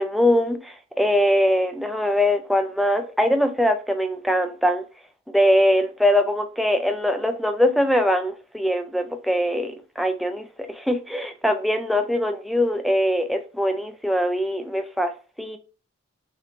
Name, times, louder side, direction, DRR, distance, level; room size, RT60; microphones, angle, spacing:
voice 1, 0.0-4.8 5.3-15.1 15.4-15.6, equal, ahead, 0.3 m, -22 dB
5.9 x 2.3 x 3.0 m
head